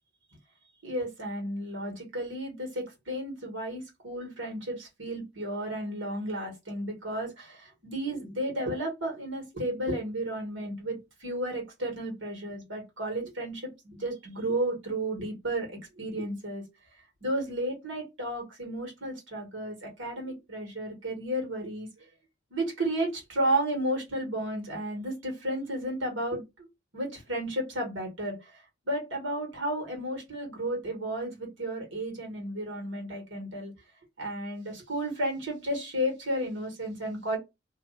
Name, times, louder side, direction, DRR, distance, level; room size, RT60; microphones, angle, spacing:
voice 1, 0.8-16.6 17.2-22.1 22.5-26.7 26.9-33.7 34.2-37.4, right 1 dB, 80° right, 1.6 m, -33 dB
2.6 x 2.6 x 4.0 m
head